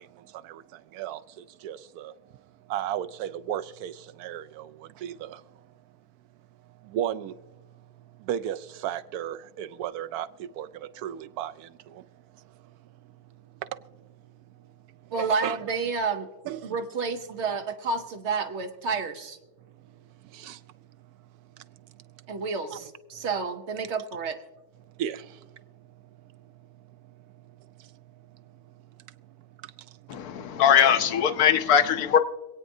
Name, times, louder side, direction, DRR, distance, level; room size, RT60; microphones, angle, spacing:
voice 1, 0.0-5.6 6.6-15.6 16.4-16.7 19.7-22.4 22.7-22.8 23.2-23.3 24.9-30.6, right 10 dB, 90° right, 1.1 m, -38 dB
voice 2, 15.1-16.3 16.6-19.4 22.3-24.4, right 4 dB, 55° right, 1.0 m, -30 dB
voice 3, 30.1-32.2, left 8 dB, 80° left, 1.2 m, -21 dB
25.5 x 8.9 x 2.7 m
omnidirectional pair, 1.6 m